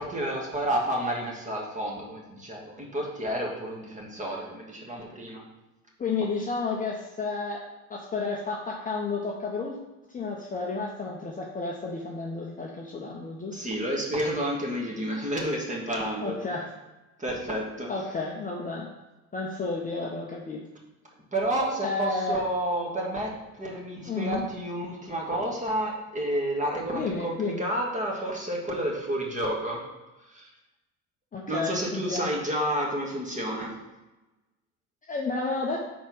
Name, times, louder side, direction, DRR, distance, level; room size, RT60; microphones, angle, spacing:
voice 1, 0.0-5.4 13.5-16.4 17.2-17.9 21.3-29.8 30.3-30.5 31.5-33.7, right 1 dB, 20° right, -1 dB, 1.7 m, -30 dB
voice 2, 6.0-7.6 7.9-9.8 10.1-13.6 16.2-16.7 17.9-18.9 19.3-20.6 21.8-22.4 24.1-24.4 26.9-27.6 31.3-32.3 35.1-35.8, left 3 dB, 20° left, -1 dB, 0.8 m, -31 dB
4.7 x 4.2 x 5.5 m, 1.1 s
hypercardioid pair, 75°, 42 cm